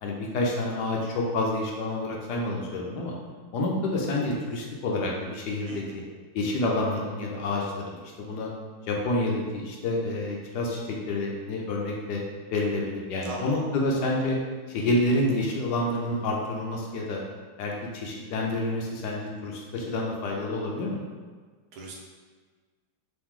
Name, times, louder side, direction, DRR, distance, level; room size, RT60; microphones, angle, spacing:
voice 1, 0.0-3.1 3.5-6.0 6.3-8.0 8.3-8.5 8.9-12.2 12.5-14.4 14.7-17.2 17.6-21.0, left 2 dB, 70° left, -2 dB, 1.0 m, -28 dB
voice 2, 5.7-6.0 13.2-13.6 21.7-21.9, right 2 dB, 80° right, -1 dB, 1.6 m, -39 dB
3.8 x 3.0 x 3.6 m, 1.5 s
omnidirectional pair, 2.3 m